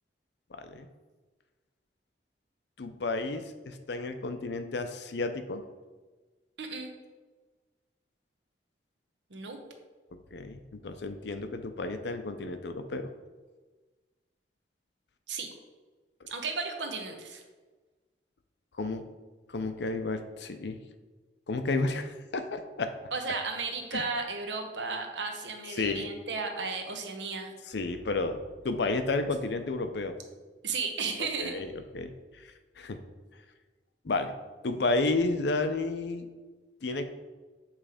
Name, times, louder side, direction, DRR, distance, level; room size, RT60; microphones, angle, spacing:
voice 1, 0.5-0.9 2.8-5.6 10.3-13.1 18.8-19.1 19.5-20.8 21.5-22.9 23.9-24.0 25.8-26.1 27.7-28.4 28.6-30.1 31.4-32.1 32.8-33.0 34.0-34.3 34.6-36.3 36.8-37.1, left 3 dB, 70° left, 8 dB, 0.6 m, -31 dB
voice 2, 6.6-6.9 9.3-9.6 15.3-15.5 16.3-17.4 23.1-27.5 30.6-31.6, right 4 dB, 80° right, 4 dB, 1.0 m, -34 dB
7.3 x 3.3 x 4.9 m, 1.3 s
head